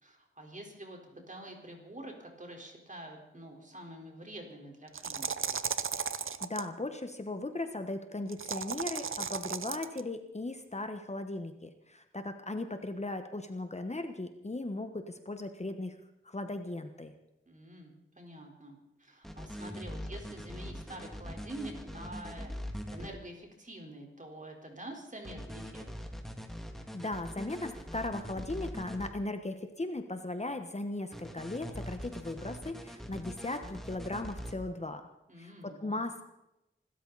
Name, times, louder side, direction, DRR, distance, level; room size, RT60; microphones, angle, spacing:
voice 1, 0.0-5.5 17.5-25.8 35.3-36.0, right 1 dB, 40° right, 1 dB, 4.4 m, -47 dB
sound 1, 4.9-6.7 8.3-10.0, right 6 dB, 75° right, 0.8 m, -35 dB
voice 2, 6.4-16.0 16.2-17.1 26.9-35.1 35.4-36.2, left 2 dB, 30° left, 7 dB, 1.3 m, -37 dB
sound 2, 19.2-23.1 25.2-29.1 31.1-34.5, equal, ahead, 2.3 m, -42 dB
25.5 x 13.5 x 4.2 m, 0.88 s
wide cardioid pair, 80°, 21 cm